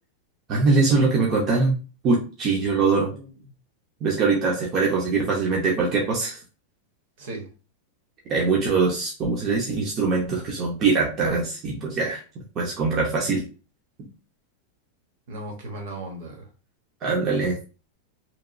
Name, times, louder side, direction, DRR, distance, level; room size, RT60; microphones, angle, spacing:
voice 1, 0.5-1.8 2.0-3.1 4.0-6.4 8.3-12.2 12.6-13.4 14.0-14.1 17.0-17.6, right 4 dB, 25° right, -2 dB, 0.5 m, -22 dB
voice 2, 2.8-3.3 7.2-7.5 15.3-16.5, right 2 dB, 50° right, 2 dB, 0.9 m, -37 dB
2.9 x 2.2 x 2.4 m, 0.34 s
supercardioid pair, 180°, 0 cm